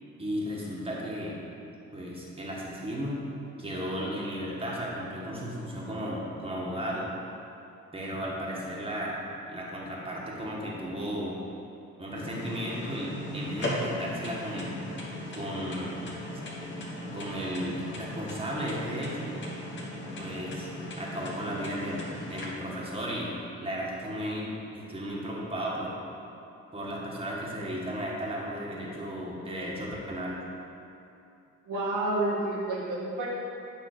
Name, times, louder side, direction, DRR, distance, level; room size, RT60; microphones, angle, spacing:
voice 1, 0.2-1.3 1.9-3.2 3.6-7.1 7.9-9.2 9.5-11.4 12.0-14.7 15.3-16.0 17.1-19.3 20.2-20.7 21.0-23.3 23.6-26.0 26.7-30.4, equal, 20° right, -4 dB, 1.7 m, -34 dB
sound 1, 12.2-22.4, left 1 dB, 40° left, 1.7 m, -37 dB
voice 2, 31.7-33.3, right 2 dB, 85° right, -4 dB, 1.6 m, -29 dB
9.0 x 3.2 x 6.7 m, 2.7 s
cardioid pair, 90°, 30 cm